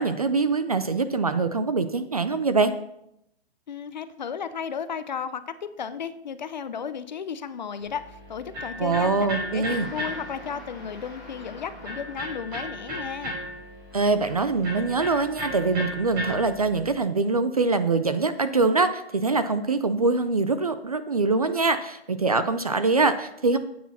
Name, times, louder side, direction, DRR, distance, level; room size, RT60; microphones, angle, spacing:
voice 1, 0.0-2.7 8.8-9.9 13.9-23.6, right 3 dB, 35° right, 11 dB, 0.4 m, -23 dB
voice 2, 3.7-13.4, left 7 dB, 45° left, 13 dB, 0.6 m, -34 dB
Electric guitar, 7.8-16.9, equal, 20° right, 2.7 m, -36 dB
sound 1, 9.6-12.7 13.9-14.7, equal, ahead, 1.6 m, -46 dB
9.5 x 8.6 x 4.2 m, 0.79 s
hypercardioid pair, 175°, 32 cm